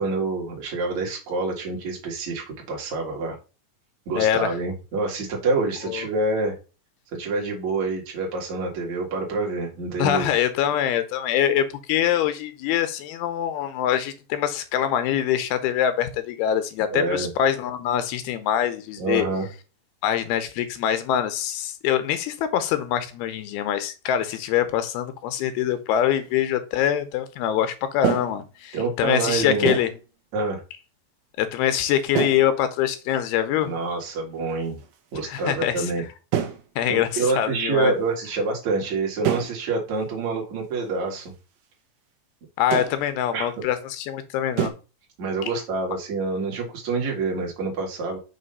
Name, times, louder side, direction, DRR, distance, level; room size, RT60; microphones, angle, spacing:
voice 1, 0.0-3.4 4.1-6.5 7.1-10.3 16.9-17.3 19.0-19.5 28.7-29.8 30.3-30.6 33.6-34.8 35.1-36.0 36.9-41.3 43.3-43.6 45.2-48.2, right 3 dB, 55° right, 2.6 m, -27 dB
voice 2, 4.2-4.5 5.9-6.1 10.0-19.3 20.0-29.9 31.4-33.7 35.2-35.9 36.8-38.0 42.6-44.7, left 10 dB, 85° left, 2.6 m, -24 dB
sound 1, 25.4-25.5 25.9-26.2 28.0-28.5 29.7-30.0 32.2-32.5 33.6-33.8 34.1-34.5 34.8-35.0 35.3-35.7 36.3-36.7 39.2-39.7 40.0-40.1 40.7-40.8 42.7-43.0 44.6-44.7, right 9 dB, 75° right, 2.4 m, -26 dB
6.6 x 3.1 x 5.3 m
omnidirectional pair, 4.5 m